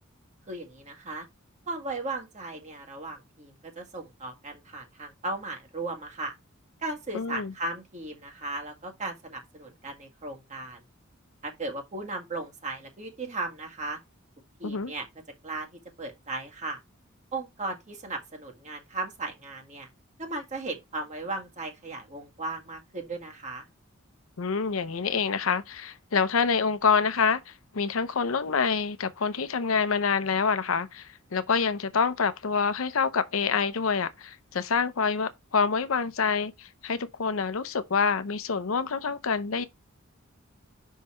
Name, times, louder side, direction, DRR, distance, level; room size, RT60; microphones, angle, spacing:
voice 1, 0.5-1.3 1.7-6.3 6.8-10.8 11.4-14.0 14.6-15.1 15.4-16.8 17.3-19.9 20.2-23.7, right 2 dB, 35° right, 1.8 m, -36 dB
voice 2, 7.1-7.5 14.6-14.9 24.4-39.6, left 5 dB, 75° left, 0.7 m, -27 dB
5.5 x 5.5 x 4.3 m
head